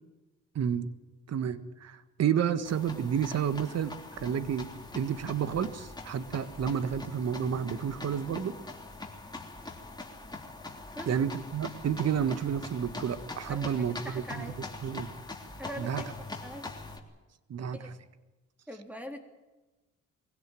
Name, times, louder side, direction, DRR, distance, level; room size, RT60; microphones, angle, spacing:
voice 1, 0.5-0.9 1.3-8.5 11.1-14.5 14.8-15.1 15.8-16.0 17.5-17.8, right 8 dB, 55° right, 12 dB, 1.6 m, -30 dB
sound 1, 2.6-17.0, left 2 dB, 15° left, 3.3 m, -43 dB
voice 2, 13.5-14.5 15.6-16.6 17.7-17.9 18.7-19.2, equal, 5° right, 5 dB, 3.6 m, -43 dB
23.0 x 16.5 x 9.3 m, 1.1 s
cardioid pair, 90°, 30 cm